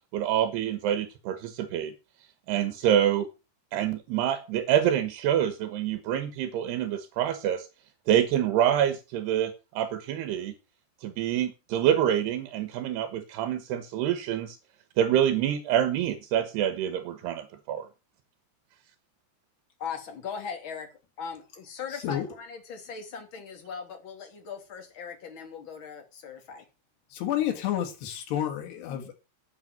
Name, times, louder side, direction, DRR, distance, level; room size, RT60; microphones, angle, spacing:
voice 1, 0.1-1.9 2.5-3.3 3.7-7.7 8.1-10.5 11.0-14.6 15.0-17.9, right 10 dB, 85° right, 3.3 m, -26 dB
voice 2, 19.8-20.9 21.2-26.7, left 6 dB, 35° left, 2.9 m, -39 dB
voice 3, 27.1-29.1, left 11 dB, 90° left, 3.9 m, -30 dB
9.4 x 8.0 x 7.6 m
omnidirectional pair, 4.6 m